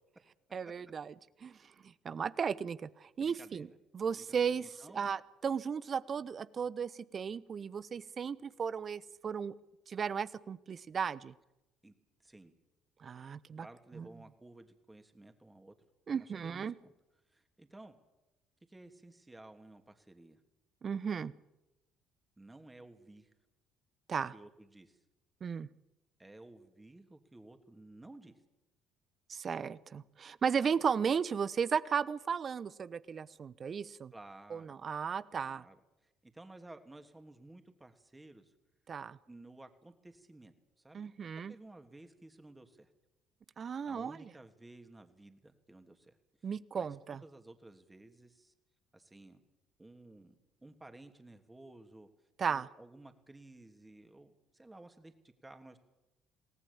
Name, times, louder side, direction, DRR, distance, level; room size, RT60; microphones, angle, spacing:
voice 1, 0.5-1.1 1.4-3.7 3.9-9.5 9.9-11.3 13.0-13.7 13.9-14.1 16.1-16.7 20.8-21.3 24.1-24.3 25.4-25.7 29.3-34.1 34.5-35.6 38.9-39.2 40.9-41.5 43.6-44.3 46.4-47.2 52.4-52.7, right 6 dB, 45° right, 18 dB, 1.0 m, -35 dB
voice 2, 3.2-3.7 4.1-5.1 11.8-11.9 12.2-12.5 13.6-15.7 16.1-16.9 17.3-17.9 18.7-20.4 22.4-23.3 24.1-25.0 26.2-28.4 34.1-34.7 35.3-35.8 36.0-38.5 39.3-41.0 41.5-42.9 43.9-46.1 46.7-48.5 48.9-49.4 49.8-50.3 50.6-52.1 52.5-55.8, right 2 dB, 15° right, 7 dB, 3.1 m, -55 dB
27.5 x 18.5 x 7.3 m, 0.97 s
hypercardioid pair, 55°, 0 cm